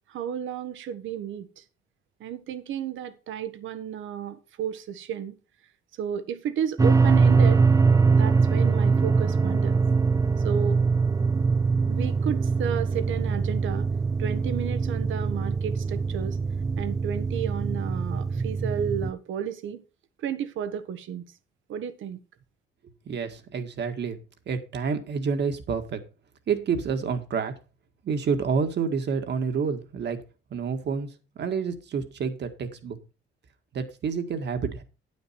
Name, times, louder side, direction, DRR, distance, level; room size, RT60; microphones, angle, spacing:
voice 1, 0.1-1.6 2.2-5.3 6.0-7.7 8.1-9.8 10.4-10.8 11.9-13.9 14.2-16.4 16.8-19.8 20.2-21.3 21.7-22.2, right 9 dB, 75° right, 1.3 m, -32 dB
sound 1, 6.8-19.1, right 4 dB, 15° right, 0.5 m, -23 dB
voice 2, 23.1-24.2 24.5-26.0 26.5-27.5 28.0-30.2 30.5-33.0 33.7-34.8, right 6 dB, 60° right, 1.9 m, -28 dB
9.4 x 9.1 x 4.4 m
cardioid pair, 90°, 20 cm